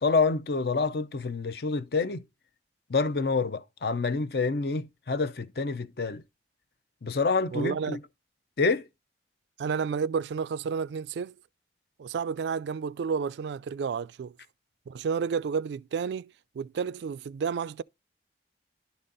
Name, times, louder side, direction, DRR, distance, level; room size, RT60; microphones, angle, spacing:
voice 1, 0.0-2.2 2.9-6.2 7.0-8.0 8.6-8.9, left 4 dB, 65° left, 0.6 m, -27 dB
voice 2, 7.5-8.0 9.6-11.4 12.0-14.4 14.9-17.8, right 6 dB, 80° right, 0.3 m, -31 dB
11.5 x 4.1 x 3.8 m
head